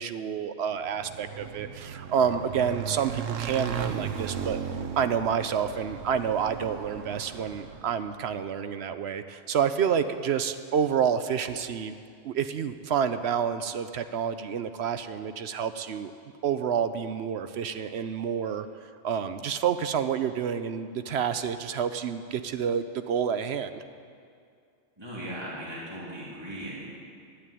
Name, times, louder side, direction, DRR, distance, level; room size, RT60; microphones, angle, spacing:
voice 1, 0.0-4.6 5.0-12.0 12.2-16.1 16.4-23.8, right 7 dB, 65° right, 10 dB, 0.8 m, -29 dB
Motorcycle / Engine, 0.8-8.2, right 7 dB, 85° right, 1.1 m, -36 dB
voice 2, 25.0-26.8, right 1 dB, 20° right, -7 dB, 2.8 m, -38 dB
11.5 x 9.1 x 9.8 m, 2.3 s
omnidirectional pair, 1.3 m